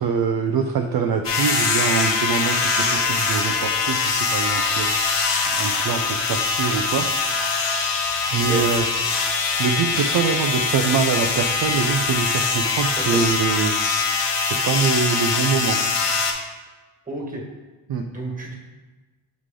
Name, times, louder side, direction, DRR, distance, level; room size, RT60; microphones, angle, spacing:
voice 1, 0.0-5.2 5.5-7.1 8.3-14.1 14.4-15.8 17.9-18.1, right 6 dB, 50° right, 5 dB, 0.6 m, -24 dB
sound 1, 1.2-16.3, left 4 dB, 60° left, 1.3 m, -23 dB
voice 2, 17.1-17.4 18.1-18.5, right 1 dB, 15° right, -1 dB, 1.9 m, -31 dB
8.2 x 3.2 x 3.8 m, 1.2 s
cardioid pair, 75°, 49 cm